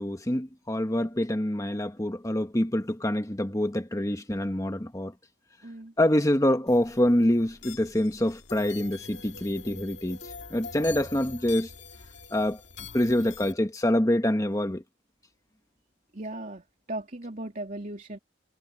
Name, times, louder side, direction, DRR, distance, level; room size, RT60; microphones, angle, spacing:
voice 1, 0.0-5.1 6.0-10.2 10.5-11.7 12.3-12.6 12.9-14.8, left 1 dB, 15° left, 1.3 m, -26 dB
voice 2, 5.6-5.9 16.1-18.2, right 1 dB, 45° right, 3.1 m, -37 dB
sound 1, 6.7-13.5, left 5 dB, 60° left, 2.3 m, -44 dB
head